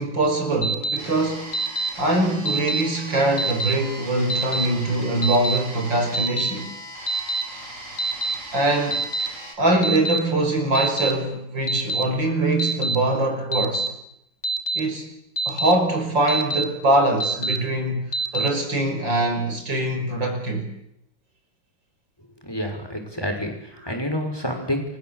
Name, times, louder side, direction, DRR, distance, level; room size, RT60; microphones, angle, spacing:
voice 1, 0.0-1.5 2.0-6.7 8.5-9.1 9.6-13.9 14.7-15.1 15.5-20.7 23.7-23.9, right 1 dB, 65° right, 6.2 m, -23 dB
Alarm, 0.6-1.0 1.5-1.9 2.5-2.8 3.4-3.7 4.3-4.7 5.2-5.6 6.1-6.5 7.1-7.4 8.0-8.3 8.9-9.3 9.8-10.2 10.7-11.1 11.7-12.0 12.6-13.0 13.5-13.9 14.4-14.8 15.4-15.7 16.3-16.6 17.2-17.6 18.1-18.5, right 2 dB, 35° left, 3.3 m, -25 dB
sound 1, 1.0-9.6, right 1 dB, 40° right, 5.5 m, -39 dB
voice 2, 22.4-23.5 23.8-24.8, equal, 10° left, 6.4 m, -28 dB
29.5 x 24.0 x 8.4 m
omnidirectional pair, 2.1 m